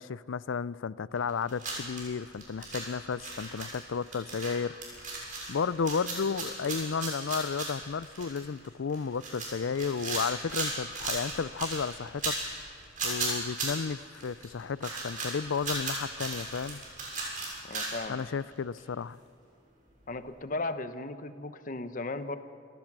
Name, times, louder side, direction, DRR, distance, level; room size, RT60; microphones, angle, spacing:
voice 1, 0.0-4.7 5.0-5.2 5.5-12.3 13.0-16.8 18.1-19.2, left 5 dB, 75° left, 19 dB, 0.5 m, -33 dB
sound 1, 1.2-18.5 18.8-18.9 19.9-20.0, right 3 dB, 45° right, 6.4 m, -36 dB
voice 2, 17.7-18.2 20.1-22.4, left 2 dB, 45° left, 11 dB, 0.9 m, -36 dB
28.0 x 17.0 x 6.1 m, 2.4 s
head